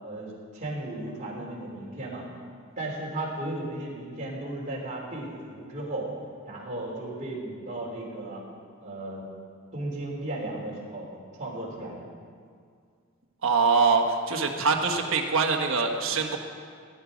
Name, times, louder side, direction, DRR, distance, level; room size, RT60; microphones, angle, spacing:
voice 1, 0.0-2.2 2.8-6.1 6.4-8.4 8.8-9.3 9.7-11.1 11.4-12.1, right 1 dB, 35° right, -4 dB, 3.3 m, -35 dB
voice 2, 13.4-16.4, right 4 dB, 65° right, 2 dB, 1.4 m, -24 dB
18.0 x 10.5 x 5.1 m, 2.2 s
head